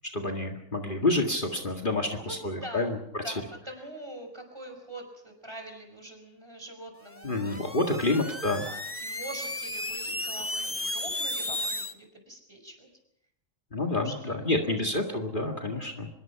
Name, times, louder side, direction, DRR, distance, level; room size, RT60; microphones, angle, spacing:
voice 1, 0.1-3.3 7.2-8.6 13.7-16.1, left 2 dB, 40° left, 2 dB, 2.1 m, -28 dB
voice 2, 2.6-3.0 3.2-7.6 8.0-8.2 8.6-12.9 13.9-14.9 15.7-16.1, right 1 dB, 20° right, 4 dB, 5.4 m, -44 dB
sound 1, 7.1-11.9, left 1 dB, 10° left, 1.0 m, -34 dB
25.0 x 22.0 x 5.8 m, 0.79 s
omnidirectional pair, 1.3 m